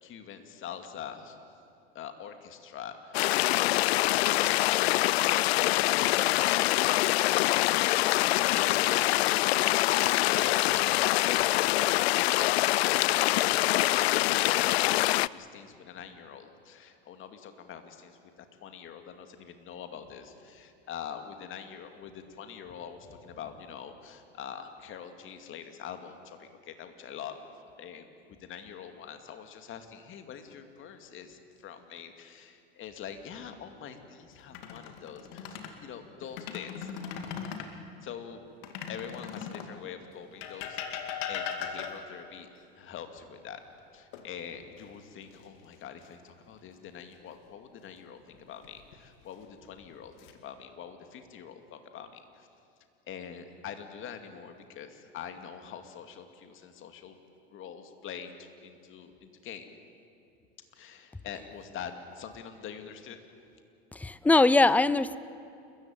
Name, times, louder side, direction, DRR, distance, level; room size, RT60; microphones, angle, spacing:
voice 1, 0.0-1.4 1.9-3.2 3.6-9.5 9.9-10.8 11.4-27.4 27.8-28.1 28.4-36.9 38.0-38.4 38.9-43.6 43.9-52.5 53.1-57.2 57.5-59.8 60.7-63.2, left 8 dB, 40° left, 2.3 m, -44 dB
sound 1, 3.1-15.3, left 17 dB, 85° left, 0.5 m, -25 dB
sound 2, 34.4-35.8 36.2-37.7 38.6-39.8 40.4-42.2 44.1-44.8 45.2-45.4 48.3-48.9 49.7-50.3, left 7 dB, 70° left, 2.4 m, -39 dB
voice 2, 63.9-65.2, left 3 dB, 5° left, 0.5 m, -22 dB
29.5 x 14.5 x 9.2 m
supercardioid pair, 110°, 31 cm